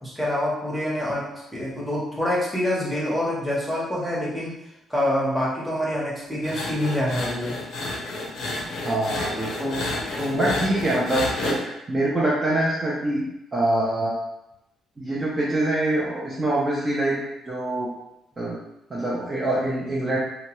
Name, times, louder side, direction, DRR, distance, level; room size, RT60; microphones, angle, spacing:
voice 1, 0.0-4.6 4.9-7.6 9.6-10.5, left 1 dB, ahead, -6 dB, 0.9 m, -26 dB
sound 1, 6.4-11.6, left 2 dB, 80° left, 0.7 m, -30 dB
voice 2, 8.8-9.7 10.3-11.6 11.9-13.2 13.5-14.2 15.0-17.2 17.5-17.9 18.4-18.6 18.9-20.2, right 1 dB, 20° right, -6 dB, 0.6 m, -24 dB
2.8 x 2.2 x 3.0 m, 0.87 s
cardioid pair, 130°, 0 cm